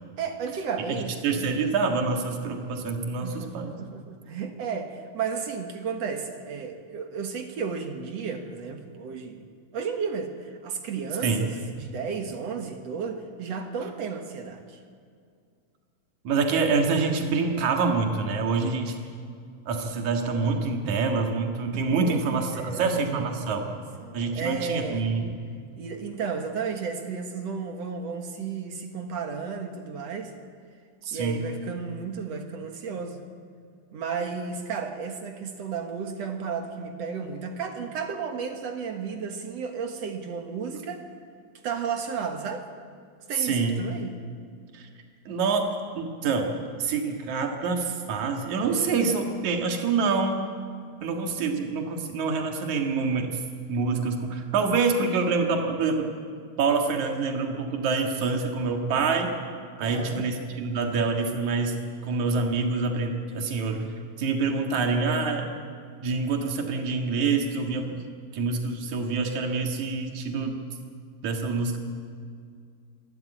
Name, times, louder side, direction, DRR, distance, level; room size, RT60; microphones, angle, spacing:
voice 1, 0.2-1.6 3.2-9.5 9.7-14.8 21.8-25.1 25.8-30.3 31.1-33.2 33.9-41.1 41.6-42.7 43.3-44.1 48.6-48.7 59.8-60.2, right 6 dB, 65° right, 5 dB, 2.6 m, -33 dB
voice 2, 0.9-3.7 11.2-11.4 16.2-18.9 19.7-23.7 24.1-25.3 31.0-31.4 43.4-43.8 44.7-44.9 45.3-50.5 51.0-53.4 53.7-56.1 56.6-59.3 59.8-61.8 62.0-63.8 64.2-65.5 66.0-68.0 68.3-70.6 71.2-71.8, right 4 dB, 80° right, 3 dB, 3.2 m, -26 dB
24.5 x 12.5 x 9.0 m, 2.2 s
omnidirectional pair, 3.3 m